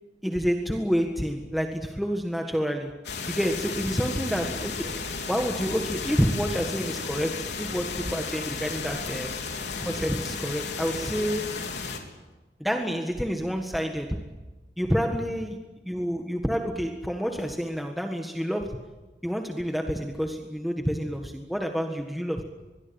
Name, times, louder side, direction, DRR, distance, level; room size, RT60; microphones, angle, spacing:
voice 1, 0.2-3.0 3.3-4.9 5.3-9.4 9.8-11.6 12.6-14.2 14.8-15.6 15.8-18.8 19.2-22.4, equal, ahead, 3 dB, 1.6 m, -28 dB
sound 1, 3.0-12.0, left 4 dB, 80° left, 3.9 m, -34 dB
24.5 x 22.5 x 8.9 m, 1.1 s
head